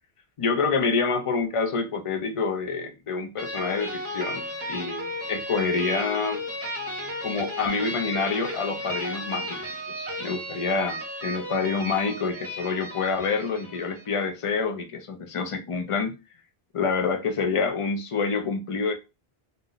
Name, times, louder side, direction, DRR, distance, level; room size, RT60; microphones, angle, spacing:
voice 1, 0.4-6.4 7.2-9.6 10.0-16.1 16.7-18.9, left 4 dB, 50° left, 0.4 m, -27 dB
sound 1, 3.4-14.1, equal, 15° right, 0.8 m, -34 dB
2.5 x 2.0 x 3.8 m
omnidirectional pair, 1.1 m